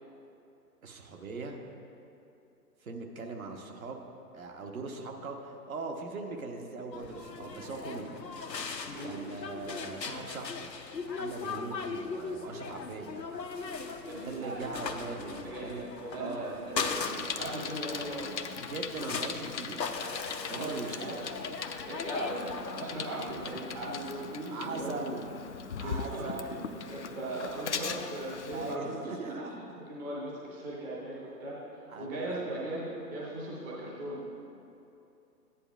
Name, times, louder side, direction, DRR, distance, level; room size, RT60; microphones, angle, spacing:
voice 1, 0.8-1.6 2.8-4.0 4.3-8.2 9.0-10.7 11.1-13.2 14.1-15.9 16.2-16.6 18.6-19.8 20.4-20.9 24.5-25.2 25.6-26.7 28.5-29.8 31.9-32.4, right 3 dB, 55° right, 2 dB, 1.1 m, -40 dB
sound 1, 6.9-23.5, left 4 dB, 85° left, 0.8 m, -39 dB
voice 2, 14.0-14.9 15.4-18.4 20.4-21.2 21.9-25.2 25.8-29.3 29.8-34.3, right 1 dB, 10° right, -6 dB, 0.7 m, -39 dB
Bicycle, 16.8-28.8, left 6 dB, 50° left, 0.5 m, -40 dB
14.0 x 9.8 x 2.4 m, 2.8 s
figure-of-eight pair, 125°, 49 cm